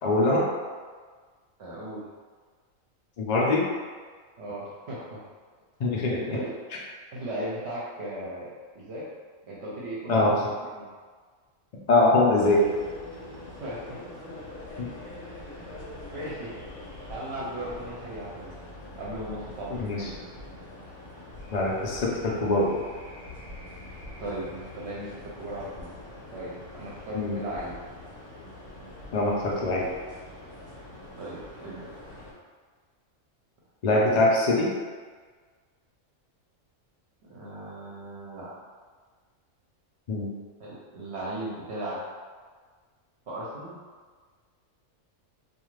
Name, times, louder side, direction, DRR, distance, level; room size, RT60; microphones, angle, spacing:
voice 1, 0.0-0.4 3.2-3.6 5.8-6.4 10.1-10.4 11.9-12.6 14.8-14.9 19.8-20.1 21.5-22.8 27.1-27.4 29.1-29.8 33.8-34.7 40.1-40.3, left 2 dB, 65° left, -3 dB, 0.4 m, -23 dB
voice 2, 1.6-2.0 4.4-5.2 6.2-6.5 7.1-9.1 9.5-10.9 13.4-14.0 16.1-16.6 17.1-18.5 19.0-20.2 24.2-25.9 26.3-27.8 31.2-31.9 37.2-38.5 40.6-42.0 43.3-43.8, right 1 dB, 65° right, -7 dB, 0.8 m, -37 dB
sound 1, 12.4-32.3, left 1 dB, 40° left, 0.8 m, -44 dB
2.4 x 2.4 x 3.1 m, 1.5 s
omnidirectional pair, 1.3 m